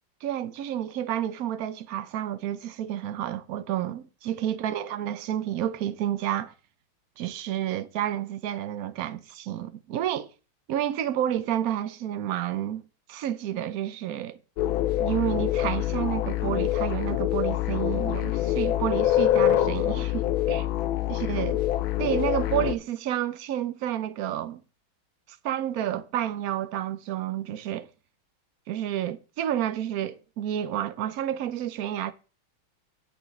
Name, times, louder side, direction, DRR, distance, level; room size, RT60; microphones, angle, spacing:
voice 1, 0.2-6.5 7.2-10.3 10.7-12.8 13.1-14.4 15.0-20.7 21.1-21.6 22.0-24.6 25.4-27.9 28.7-32.1, right 11 dB, 70° right, 0.9 m, -30 dB
sound 1, 14.6-22.8, left 13 dB, 80° left, 1.4 m, -25 dB
16.5 x 6.0 x 3.2 m
omnidirectional pair, 2.2 m